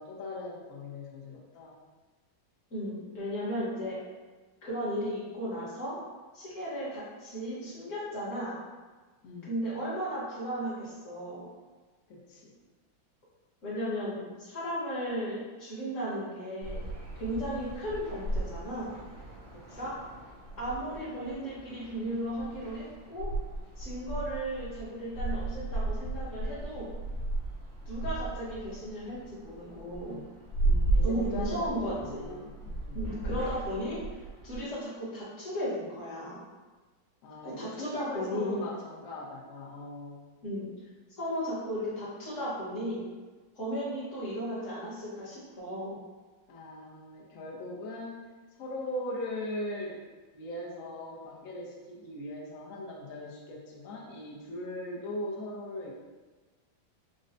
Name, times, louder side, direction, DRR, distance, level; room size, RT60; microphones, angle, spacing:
voice 1, 0.0-1.7 9.2-9.6 12.1-12.5 19.5-19.9 30.6-33.4 37.2-40.3 46.5-48.2 48.6-50.0 50.3-55.9, left 1 dB, 65° left, -3 dB, 0.9 m, -40 dB
voice 2, 2.7-4.0 4.6-6.0 6.3-8.5 9.4-11.4 13.6-16.8 17.2-19.0 19.8-19.9 20.6-23.3 23.8-26.9 27.8-30.2 31.0-32.4 32.9-34.0 34.4-36.4 37.4-38.7 40.4-40.7 41.2-43.1 43.5-46.0, equal, 45° left, -9 dB, 1.3 m, -35 dB
sound 1, 16.6-34.6, right 2 dB, 80° right, 1.6 m, -35 dB
5.1 x 2.1 x 2.6 m, 1.3 s
omnidirectional pair, 2.2 m